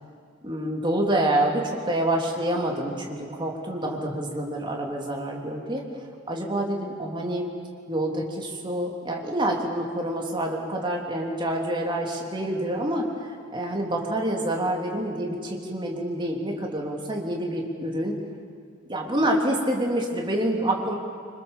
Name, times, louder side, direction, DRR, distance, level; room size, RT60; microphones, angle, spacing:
voice 1, 0.4-5.9 6.3-7.5 7.9-18.2 18.9-21.0, right 1 dB, 25° right, 0 dB, 3.1 m, -27 dB
25.5 x 25.5 x 7.3 m, 2.3 s
head